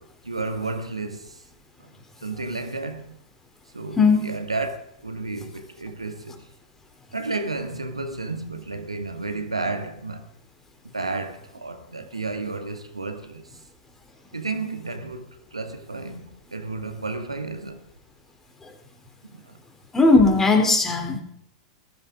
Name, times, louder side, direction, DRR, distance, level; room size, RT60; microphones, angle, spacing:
voice 1, 0.0-1.4 1.8-1.9 2.2-3.2 3.7-6.4 7.1-10.3 10.9-13.5 14.3-17.8 19.2-19.5, right 3 dB, 80° right, 1.9 m, -32 dB
voice 2, 19.9-21.2, left 3 dB, 15° left, 3.5 m, -17 dB
20.5 x 15.0 x 3.8 m
figure-of-eight pair, 95°, 3 cm